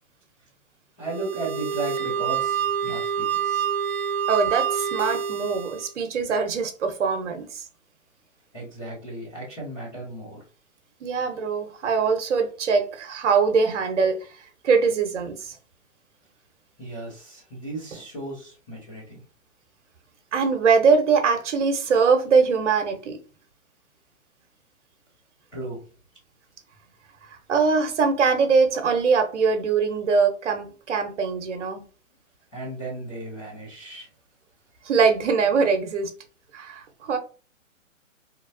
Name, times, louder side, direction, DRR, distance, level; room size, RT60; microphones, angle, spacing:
voice 1, 1.0-3.7 8.5-10.4 16.8-19.2 25.5-25.8 32.5-34.1, right 2 dB, 5° left, 0.3 m, -35 dB
sound 1, 1.0-5.9, right 8 dB, 85° right, 0.8 m, -27 dB
voice 2, 4.3-7.6 11.0-14.3 14.6-15.6 20.3-23.2 27.5-31.8 34.8-36.1 36.5-37.2, right 5 dB, 60° right, 1.1 m, -22 dB
3.8 x 3.0 x 2.7 m
hypercardioid pair, 130°, 40 cm